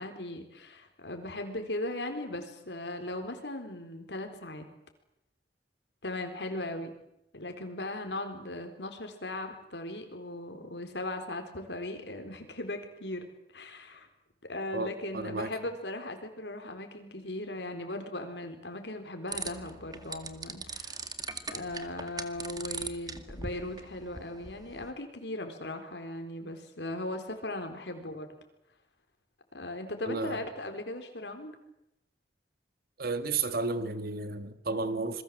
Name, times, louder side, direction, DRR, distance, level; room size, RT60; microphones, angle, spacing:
voice 1, 0.0-4.7 6.0-6.9 7.3-13.2 13.5-14.1 14.5-21.0 21.5-28.3 29.5-31.5, left 1 dB, 80° left, 5 dB, 4.1 m, -38 dB
voice 2, 15.1-15.5 30.1-30.4 33.0-35.2, right 3 dB, 60° right, 11 dB, 1.9 m, -32 dB
sound 1, 19.3-24.9, right 4 dB, 25° right, 1.9 m, -41 dB
27.5 x 21.5 x 7.7 m, 0.82 s
head